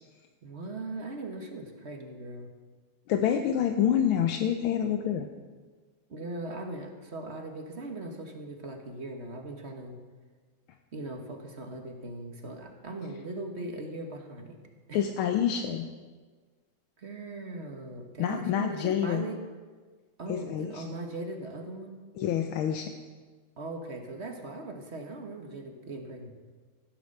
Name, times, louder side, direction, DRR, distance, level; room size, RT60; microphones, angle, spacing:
voice 1, 0.4-2.5 6.1-10.0 10.9-14.6 14.9-15.0 17.0-19.4 20.2-21.9 23.6-26.3, right 2 dB, 35° right, 3 dB, 1.4 m, -39 dB
voice 2, 3.1-5.3 14.9-15.9 18.2-19.2 20.3-20.8 22.2-22.9, left 9 dB, 80° left, 6 dB, 1.6 m, -27 dB
15.0 x 9.3 x 6.6 m, 1.4 s
omnidirectional pair, 2.3 m